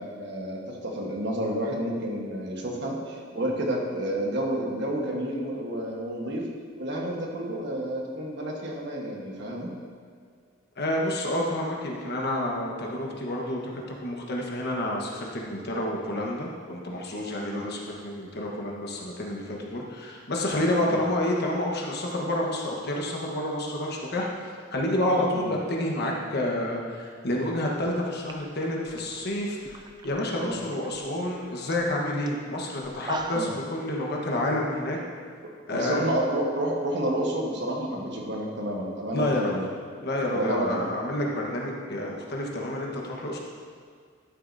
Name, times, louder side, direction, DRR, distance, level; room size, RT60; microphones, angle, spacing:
voice 1, 0.0-6.4 6.8-9.7 17.5-17.6 20.8-21.0 25.3-25.5 30.4-30.6 33.3-33.5 35.7-39.7 40.3-40.9, right 1 dB, 60° right, -1 dB, 1.3 m, -30 dB
voice 2, 10.8-13.6 14.0-24.3 24.7-35.0 35.7-36.1 39.1-39.6 40.0-43.4, left 1 dB, 55° left, -1 dB, 1.2 m, -29 dB
sound 1, 27.9-28.0 28.2-30.2 30.5-31.0 31.3-31.4 31.7-31.9 32.3-32.4 32.8-33.6, right 3 dB, 20° right, 0.4 m, -39 dB
12.5 x 7.5 x 2.7 m, 2.1 s
head